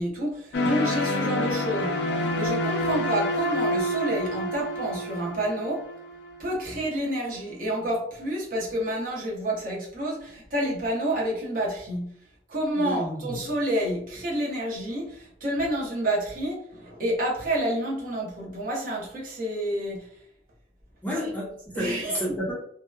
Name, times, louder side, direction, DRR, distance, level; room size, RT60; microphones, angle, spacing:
voice 1, 0.0-5.8 6.4-12.1 12.5-20.1 21.7-22.2, right 1 dB, 50° right, -3 dB, 0.8 m, -29 dB
sound 1, 0.5-6.5, left 1 dB, 60° left, 0.4 m, -28 dB
voice 2, 12.8-13.4 21.0-22.5, equal, 10° left, -5 dB, 0.6 m, -31 dB
2.8 x 2.1 x 2.2 m, 0.66 s
head